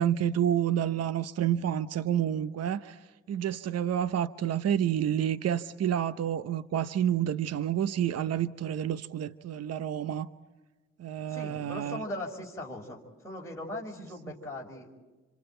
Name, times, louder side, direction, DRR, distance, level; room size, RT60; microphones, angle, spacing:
voice 1, 0.0-3.0 3.3-10.3 11.0-12.0, right 10 dB, 55° right, 13 dB, 0.9 m, -29 dB
voice 2, 11.3-14.9, left 1 dB, 10° left, -4 dB, 4.9 m, -39 dB
28.0 x 26.5 x 4.5 m, 1.2 s
cardioid pair, 90°, 30 cm